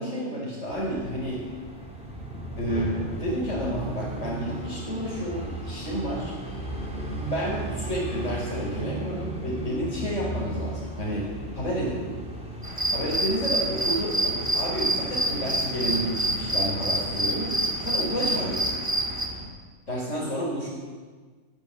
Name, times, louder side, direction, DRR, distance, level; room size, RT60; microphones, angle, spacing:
voice 1, 0.0-1.4 2.6-2.9 3.2-6.3 7.3-12.1 12.9-18.7 19.9-20.7, equal, 65° left, -6 dB, 5.7 m, -30 dB
sound 1, 0.7-19.5, right 1 dB, 5° right, 5.0 m, -36 dB
sound 2, 12.6-19.3, right 1 dB, 20° right, 3.0 m, -27 dB
21.5 x 15.5 x 9.2 m, 1.5 s
omnidirectional pair, 1.4 m